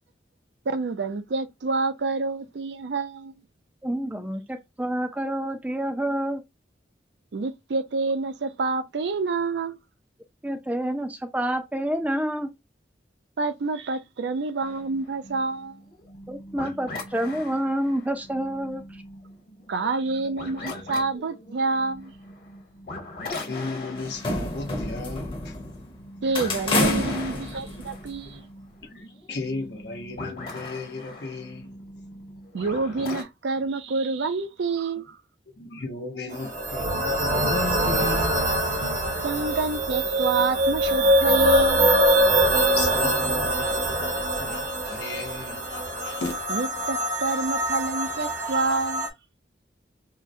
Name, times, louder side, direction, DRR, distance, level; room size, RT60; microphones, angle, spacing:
voice 1, 0.7-3.3 7.3-9.8 13.4-15.8 19.7-22.1 26.2-28.4 32.5-35.2 39.2-41.9 46.5-49.1, right 3 dB, 75° right, 0.4 m, -28 dB
voice 2, 3.8-6.4 10.4-12.5 16.3-18.8, right 1 dB, 10° right, 0.4 m, -28 dB
sound 1, 14.6-33.2, left 2 dB, 50° left, 1.3 m, -41 dB
voice 3, 23.5-26.2 27.6-28.4 28.8-31.8 32.1-32.2 35.5-38.5 40.6-40.7 42.2-42.4 42.8-46.4, left 3 dB, 65° left, 0.8 m, -36 dB
sound 2, 24.0-25.9 26.3-28.2, left 1 dB, 30° left, 0.8 m, -28 dB
sound 3, 36.3-49.1, equal, 40° right, 0.7 m, -23 dB
3.7 x 2.1 x 2.6 m
head